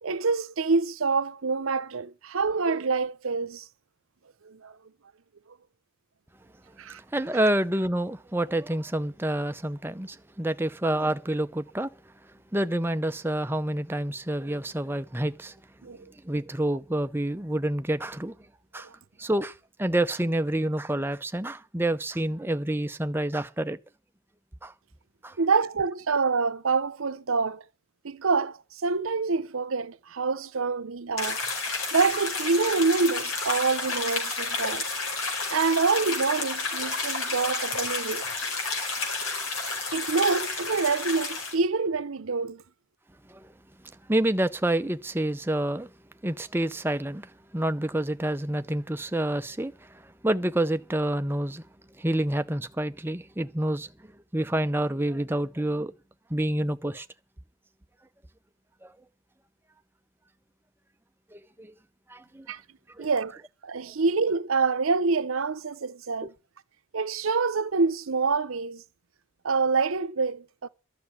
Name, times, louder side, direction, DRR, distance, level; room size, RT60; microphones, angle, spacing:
voice 1, 0.0-3.7 4.5-4.7 6.8-7.0 15.8-16.1 18.8-18.9 25.4-27.6 28.0-31.4 31.9-34.8 35.5-38.2 39.9-42.6 62.5-62.6 63.0-66.3 66.9-68.8 69.4-70.7, right 4 dB, 80° right, 0.7 m, -26 dB
voice 2, 7.1-11.9 12.5-15.6 16.2-18.3 18.7-18.9 19.2-23.8 24.6-24.7 25.2-25.4 43.3-43.5 44.1-45.9 46.2-51.6 52.0-53.9 54.3-55.9 56.3-57.1 58.8-58.9 61.3-61.7 62.1-62.5 63.0-63.1, right 1 dB, 10° right, 0.6 m, -28 dB
sound 1, 31.2-41.5, left 3 dB, 80° left, 4.7 m, -31 dB
12.0 x 6.8 x 9.7 m
head